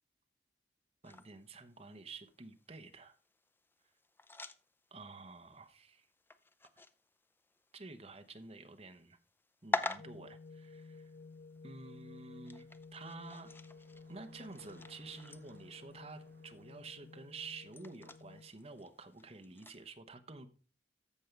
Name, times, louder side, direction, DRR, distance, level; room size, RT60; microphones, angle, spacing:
sound 1, 1.0-19.9, left 2 dB, 10° left, 0.5 m, -47 dB
voice 1, 1.0-3.1 4.9-6.1 7.7-9.2 9.6-11.1 11.6-13.5 14.1-20.5, right 3 dB, 35° right, 1.0 m, -50 dB
sound 2, 10.0-18.5, left 4 dB, 75° left, 0.4 m, -54 dB
Bicycle, 10.6-18.9, right 2 dB, 60° right, 1.1 m, -68 dB
14.0 x 5.3 x 3.4 m
head